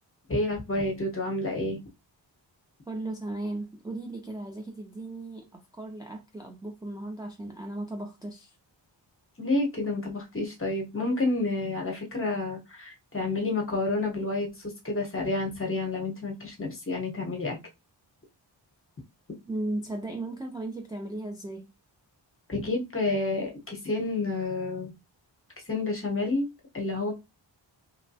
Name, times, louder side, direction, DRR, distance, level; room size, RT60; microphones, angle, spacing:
voice 1, 0.3-1.8 9.4-14.5 14.8-17.6 22.5-24.9 25.7-26.5 26.7-27.2, left 2 dB, 30° left, 1.0 m, -29 dB
voice 2, 2.9-8.5 19.5-21.7, right 2 dB, 10° right, 0.4 m, -36 dB
2.9 x 2.1 x 2.7 m
wide cardioid pair, 90°, 45 cm